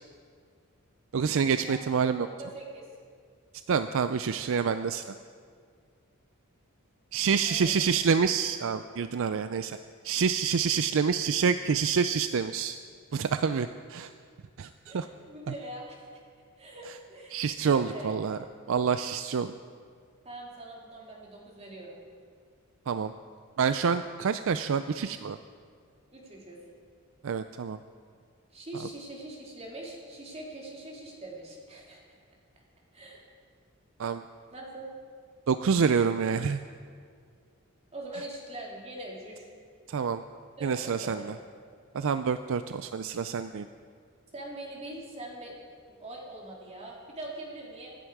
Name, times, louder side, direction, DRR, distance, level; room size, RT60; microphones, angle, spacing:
voice 1, 1.1-2.3 3.7-5.0 7.1-9.8 10.0-12.8 13.1-14.1 14.6-14.7 14.9-15.1 17.3-18.4 18.7-19.5 22.9-23.1 23.6-25.4 27.2-27.8 34.0-34.2 35.5-36.6 39.9-40.2 40.6-41.2 41.9-43.7, right 6 dB, 65° right, 11 dB, 0.4 m, -27 dB
voice 2, 1.6-2.8 7.4-7.7 14.9-16.0 16.6-18.2 20.2-22.0 26.1-26.6 28.5-32.2 32.9-33.2 34.5-34.9 37.9-39.5 40.6-41.3 44.3-45.5 46.0-47.9, right 1 dB, 30° right, -2 dB, 3.1 m, -42 dB
25.0 x 10.0 x 4.7 m, 2.1 s
head